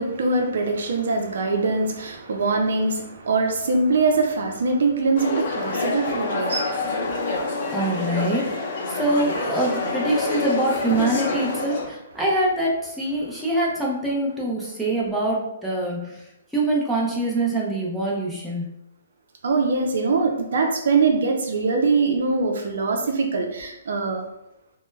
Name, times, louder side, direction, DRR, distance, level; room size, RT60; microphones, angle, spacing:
voice 1, 0.0-6.9 19.4-24.2, right 3 dB, 70° right, 3 dB, 0.4 m, -23 dB
sound 1, 5.2-11.9, left 3 dB, 50° left, 0.6 m, -27 dB
voice 2, 7.7-16.2 16.5-18.6, right 1 dB, ahead, -6 dB, 0.6 m, -24 dB
2.1 x 2.1 x 3.1 m, 0.84 s
hypercardioid pair, 140°, 0 cm